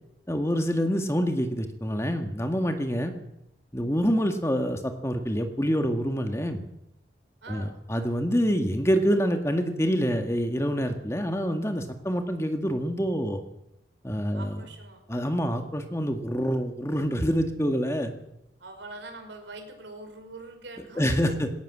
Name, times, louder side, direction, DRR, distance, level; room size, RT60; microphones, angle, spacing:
voice 1, 0.3-3.1 3.7-6.6 7.5-13.4 14.0-14.6 15.1-18.1 21.0-21.5, equal, 15° left, 5 dB, 1.9 m, -26 dB
voice 2, 7.4-7.8 14.3-15.0 18.6-21.4, right 2 dB, 85° right, 5 dB, 5.4 m, -43 dB
20.0 x 18.0 x 7.6 m, 0.83 s
head